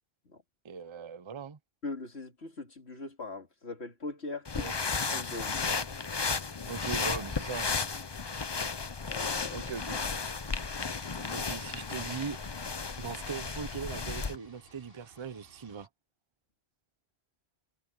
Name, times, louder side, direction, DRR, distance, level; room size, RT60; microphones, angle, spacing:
voice 1, 0.6-1.6 4.6-4.7 6.7-7.8 9.5-10.0 11.3-12.5 13.0-15.9, right 6 dB, 30° right, 0.6 m, -40 dB
voice 2, 1.8-4.7 5.1-5.6 9.1-9.7, left 3 dB, 75° left, 3.3 m, -40 dB
sound 1, 4.4-14.4, left 4 dB, 30° left, 0.6 m, -34 dB
sound 2, 9.9-15.9, right 1 dB, 60° right, 6.6 m, -59 dB
omnidirectional pair, 1.1 m